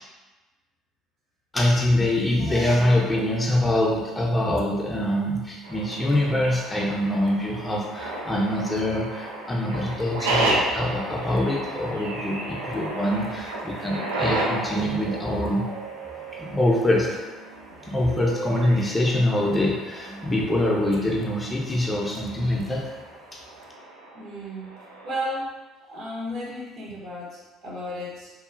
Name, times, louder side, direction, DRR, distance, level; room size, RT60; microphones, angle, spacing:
voice 1, 1.5-15.6 16.3-17.2 17.8-22.9 23.3-23.4, left 1 dB, 20° left, -3 dB, 0.6 m, -24 dB
sound 1, 5.6-25.3, right 2 dB, 85° right, 0.4 m, -33 dB
voice 2, 24.1-24.7 25.0-25.5 25.9-28.3, equal, 55° right, -5 dB, 1.0 m, -33 dB
3.0 x 2.3 x 2.5 m, 1.2 s
hypercardioid pair, 65°, 0 cm